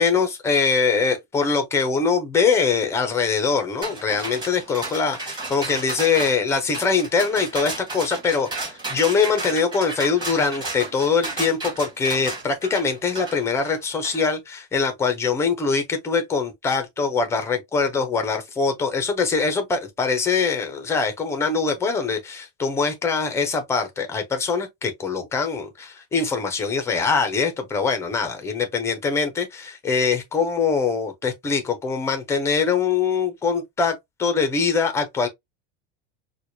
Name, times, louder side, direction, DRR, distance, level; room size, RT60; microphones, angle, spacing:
voice 1, 0.0-35.3, left 5 dB, 10° left, 0.5 m, -23 dB
sound 1, 3.8-14.2, right 2 dB, 15° right, 1.3 m, -33 dB
4.5 x 2.2 x 2.6 m
supercardioid pair, 165°, 32 cm